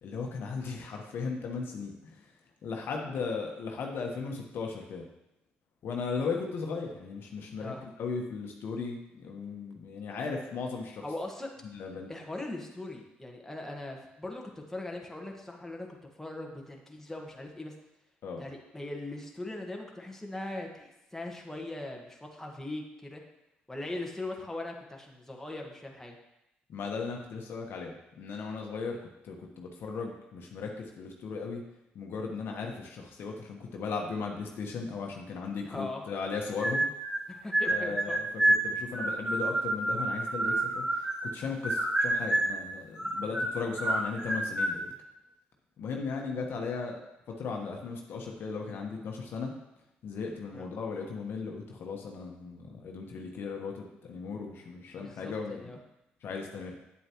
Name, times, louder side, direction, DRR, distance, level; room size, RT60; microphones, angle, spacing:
voice 1, 0.0-2.3 2.6-5.1 5.8-11.0 11.6-12.1 18.2-18.4 26.7-29.0 29.2-31.6 31.9-36.8 37.7-44.9 45.8-47.0 47.4-49.5 50.0-55.8 56.2-56.7, left 4 dB, 65° left, 1 dB, 1.2 m, -37 dB
voice 2, 11.0-11.5 12.1-15.9 16.2-17.7 18.4-23.2 23.7-26.2 35.6-36.1 37.3-38.2 43.2-43.4 50.5-50.7 54.9-55.8, left 2 dB, 10° left, 0 dB, 1.5 m, -40 dB
sound 1, 36.6-37.2 37.5-41.3 41.6-42.6 43.0-44.8, right 1 dB, 15° right, 1.3 m, -28 dB
8.4 x 7.8 x 3.0 m, 0.89 s
supercardioid pair, 65°, 4 cm